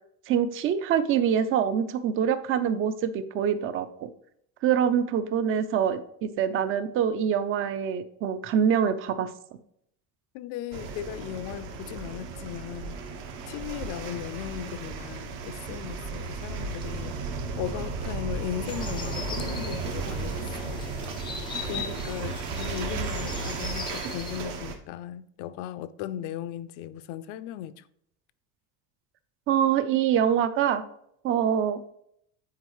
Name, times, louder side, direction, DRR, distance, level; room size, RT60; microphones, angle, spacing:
voice 1, 0.3-4.1 4.6-9.3 29.5-30.8 31.2-31.8, right 8 dB, 35° right, 0.5 m, -25 dB
voice 2, 10.3-13.0 13.5-17.2 17.6-20.9 21.6-27.9, left 11 dB, 65° left, 0.6 m, -37 dB
sound 1, 10.7-24.7, right 4 dB, 70° right, 1.4 m, -34 dB
sound 2, 18.7-24.4, left 6 dB, 15° left, 0.5 m, -40 dB
9.4 x 4.6 x 3.1 m
cardioid pair, 175°, 35 cm